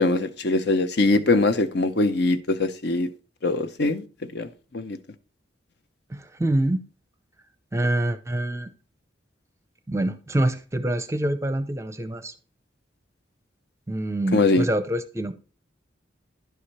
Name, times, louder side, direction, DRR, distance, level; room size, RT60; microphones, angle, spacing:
voice 1, 0.0-3.1 3.4-4.0 4.3-5.0 14.3-14.7, left 2 dB, 60° left, 0.7 m, -22 dB
voice 2, 6.1-6.8 7.7-8.7 9.9-12.3 13.9-15.3, right 1 dB, 15° right, 0.6 m, -26 dB
11.0 x 4.9 x 4.2 m
head